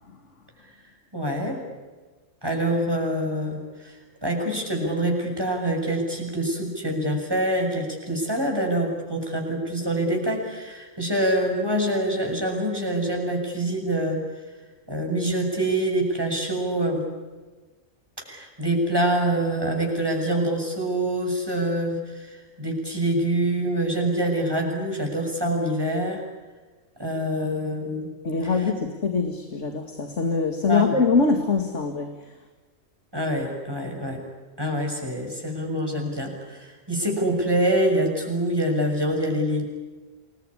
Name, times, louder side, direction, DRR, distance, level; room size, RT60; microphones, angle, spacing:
voice 1, 1.1-1.6 2.4-14.2 14.9-17.1 18.2-26.2 27.0-28.1 28.4-28.5 30.7-30.9 33.1-34.2 34.6-39.6, right 1 dB, 20° right, 1 dB, 6.9 m, -25 dB
voice 2, 28.2-32.3, left 4 dB, 70° left, 5 dB, 2.5 m, -23 dB
28.0 x 21.5 x 9.9 m, 1.3 s
omnidirectional pair, 1.3 m